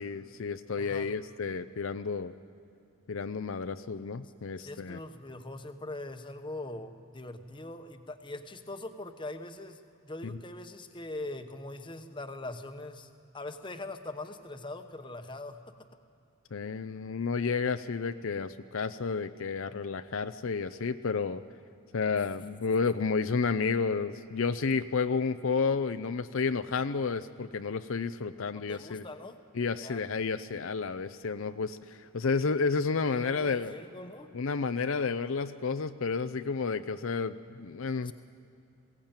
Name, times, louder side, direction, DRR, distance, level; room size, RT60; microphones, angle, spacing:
voice 1, 0.0-2.3 3.1-5.0 10.2-10.4 16.5-21.4 21.9-29.0 29.6-33.7 34.3-38.1, left 5 dB, 70° left, 10 dB, 0.5 m, -31 dB
voice 2, 0.8-1.2 4.6-15.6 28.7-29.4 29.8-30.0 33.1-34.3 37.9-38.1, left 2 dB, 20° left, 7 dB, 1.0 m, -42 dB
22.0 x 17.0 x 8.9 m, 2.6 s
head